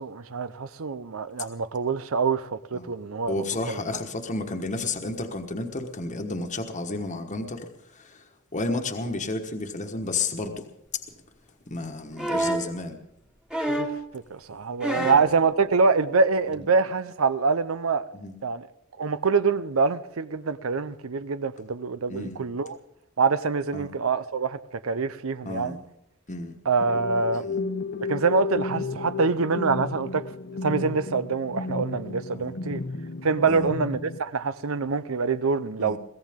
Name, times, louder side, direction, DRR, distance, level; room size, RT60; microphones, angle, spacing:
voice 1, 0.0-3.8 13.7-13.9 14.1-18.0 18.4-18.7 19.0-22.8 23.2-25.8 26.7-27.4 28.1-30.2 30.6-32.8 33.2-36.0, right 4 dB, 70° right, 0.7 m, -25 dB
voice 2, 3.3-8.2 8.5-10.6 11.7-13.0 14.9-15.2 16.5-16.7 18.1-18.4 22.1-22.4 23.7-23.9 25.4-25.8 26.3-26.6 27.3-27.6 32.3-32.5 33.5-33.7 35.8-36.0, left 2 dB, 35° left, 1.4 m, -32 dB
sound 1, 12.2-12.7 13.5-14.1 14.8-15.3 16.5-16.6, right 1 dB, 5° right, 1.5 m, -27 dB
sound 2, 26.8-34.2, left 3 dB, 55° left, 1.0 m, -33 dB
22.5 x 16.5 x 3.7 m
head